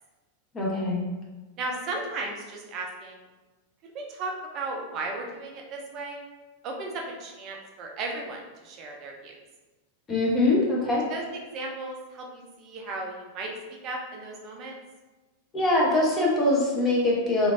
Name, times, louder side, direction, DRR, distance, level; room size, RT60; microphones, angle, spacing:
voice 1, 0.5-1.0 10.1-11.0 15.5-17.5, left 2 dB, 20° left, -4 dB, 0.9 m, -23 dB
voice 2, 1.6-3.2 3.9-6.2 6.6-9.3 11.1-13.5 13.8-14.7, right 2 dB, 35° right, 0 dB, 0.6 m, -35 dB
3.1 x 2.5 x 2.6 m, 1.2 s
figure-of-eight pair, 90°, 0 cm